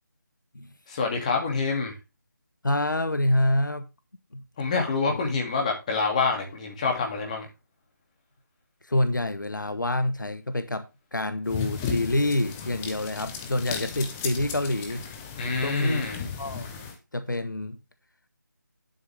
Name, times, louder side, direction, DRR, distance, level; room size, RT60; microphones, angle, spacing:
voice 1, 0.9-1.9 4.6-7.5 15.4-16.2, left 4 dB, 20° left, 2.4 m, -26 dB
voice 2, 2.6-3.8 4.3-4.4 5.1-5.2 8.8-10.9 11.1-15.0 15.6-16.0 16.4-16.7 17.1-17.8, left 1 dB, 75° left, 1.2 m, -27 dB
sound 1, 11.5-17.0, left 6 dB, 5° left, 0.4 m, -35 dB
11.5 x 6.6 x 3.4 m
figure-of-eight pair, 160°, 11 cm